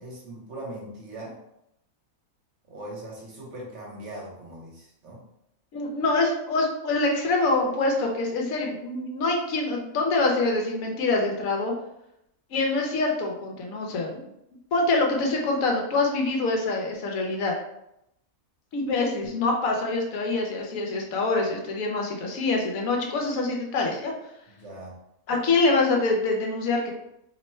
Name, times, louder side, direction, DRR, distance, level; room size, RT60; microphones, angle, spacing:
voice 1, 0.0-1.4 2.7-5.2 24.5-25.0, right 1 dB, 55° right, -3 dB, 1.2 m, -40 dB
voice 2, 5.7-11.7 12.5-14.2 14.7-17.5 18.7-24.1 25.3-26.9, left 3 dB, 70° left, 1 dB, 1.1 m, -25 dB
3.0 x 2.2 x 4.1 m, 0.81 s
omnidirectional pair, 1.6 m